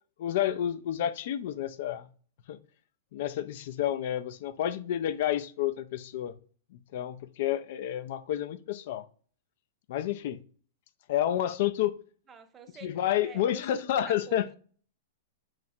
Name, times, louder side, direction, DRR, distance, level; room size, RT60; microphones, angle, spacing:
voice 1, 0.2-2.1 2.5-2.6 3.1-6.3 6.9-9.0 9.9-10.4 11.1-11.9 12.8-14.5, left 11 dB, 60° left, 0.3 m, -30 dB
voice 2, 12.3-13.8 14.0-14.5, right 5 dB, 20° right, 0.5 m, -49 dB
2.9 x 2.4 x 4.1 m
hypercardioid pair, 130°, 0 cm